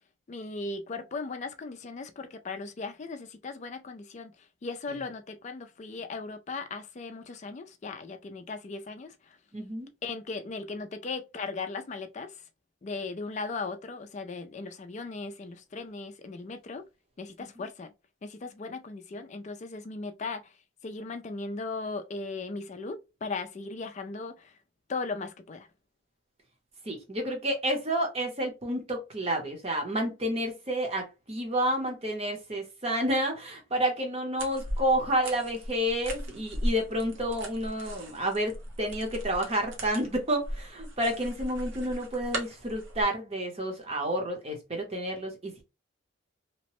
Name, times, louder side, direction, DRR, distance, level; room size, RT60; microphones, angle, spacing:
voice 1, 0.3-4.3 4.6-9.4 10.0-12.4 12.8-16.8 17.2-17.9 18.2-20.5 20.8-24.5 24.9-25.7, left 3 dB, 35° left, 0.3 m, -37 dB
voice 2, 9.5-9.9 26.9-45.6, right 1 dB, 30° right, 0.8 m, -30 dB
sound 1, 34.4-43.0, right 1 dB, 70° right, 0.8 m, -38 dB
2.9 x 2.1 x 3.0 m
head